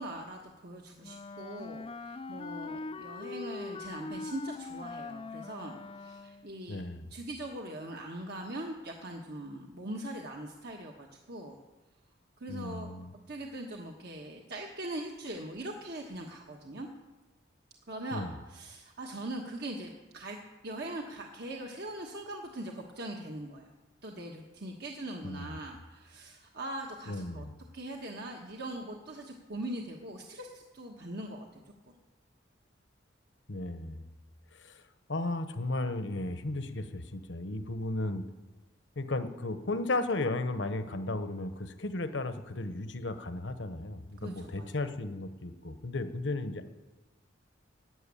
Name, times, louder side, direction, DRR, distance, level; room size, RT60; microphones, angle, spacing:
voice 1, 0.0-6.8 7.1-11.6 12.4-12.9 13.3-16.9 17.9-20.4 20.6-23.7 24.0-27.5 27.7-31.6 31.9-32.0 44.2-44.7, right 1 dB, 55° right, 0 dB, 1.3 m, -41 dB
Wind instrument woodwind instrument, 1.0-6.6, left 3 dB, 30° left, 0.4 m, -42 dB
voice 2, 6.7-7.0 12.5-13.1 18.1-18.3 25.2-25.6 27.1-27.5 33.5-34.1 34.6-34.8 35.1-38.2 39.0-46.7, left 2 dB, 70° left, 9 dB, 1.1 m, -35 dB
12.5 x 9.8 x 8.4 m, 1.2 s
head